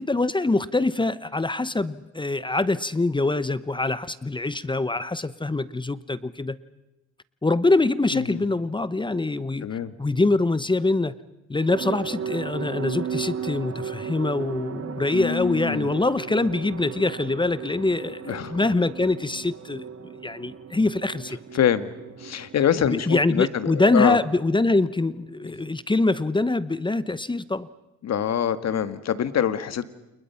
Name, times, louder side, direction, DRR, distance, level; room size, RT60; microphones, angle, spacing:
voice 1, 0.0-6.6 7.4-9.7 10.0-11.1 11.5-21.4 22.8-27.7, left 2 dB, 15° left, 16 dB, 1.0 m, -24 dB
voice 2, 8.1-8.4 9.6-9.9 15.1-15.9 18.3-18.6 21.5-21.9 22.2-24.2 28.0-29.9, left 9 dB, 60° left, 12 dB, 1.9 m, -25 dB
sound 1, 11.7-25.8 26.1-26.2 26.5-26.6, right 7 dB, 50° right, 2.1 m, -36 dB
29.5 x 28.5 x 5.8 m, 0.98 s
cardioid pair, 90°, 30 cm